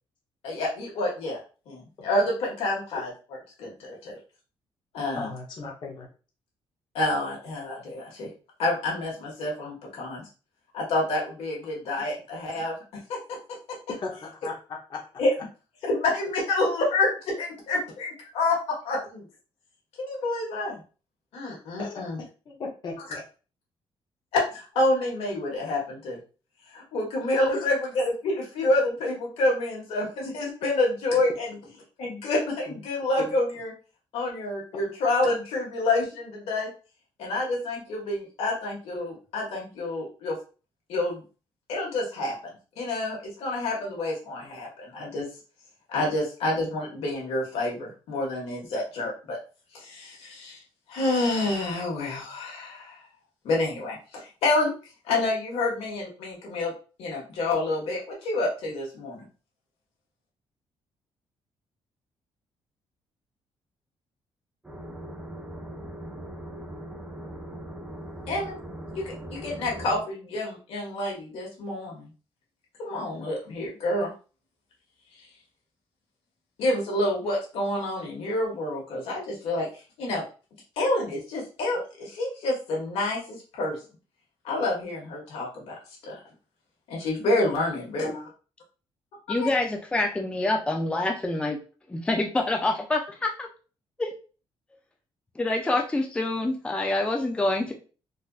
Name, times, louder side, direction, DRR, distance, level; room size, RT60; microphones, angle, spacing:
voice 1, 0.4-1.4 1.7-3.1 3.6-4.2 4.9-5.3 6.9-8.3 8.6-10.2 10.7-12.7 13.1-13.4 13.7-13.8 15.2-15.3 15.8-19.2 20.0-20.8 21.3-22.2 24.3-26.2 26.7-31.6 32.0-33.7 34.1-36.7 37.2-40.4 40.9-41.2 41.7-42.3 42.8-45.3 45.9-49.4 49.7-50.6 50.9-53.0 53.4-54.7 55.1-56.7 57.0-59.3 68.3-68.6 68.9-72.1 72.8-74.1 76.6-79.7 80.0-80.2 80.8-83.8 84.4-85.8 86.0-86.2 86.9-88.2 89.4-89.5, left 2 dB, 80° left, -2 dB, 1.5 m, -28 dB
voice 2, 5.1-6.1 13.9-14.5 14.9-15.0 21.8-22.0 22.5-23.2 27.5-27.7 32.7-32.8, left 4 dB, 50° left, -1 dB, 0.8 m, -36 dB
sound 1, 64.6-70.0, right 1 dB, 10° right, 0.8 m, -40 dB
voice 3, 89.3-91.6 91.9-93.5 94.0-94.1 95.4-97.7, left 2 dB, 10° left, 2 dB, 0.5 m, -26 dB
4.0 x 2.6 x 2.4 m, 0.36 s
cardioid pair, 120°, 10 cm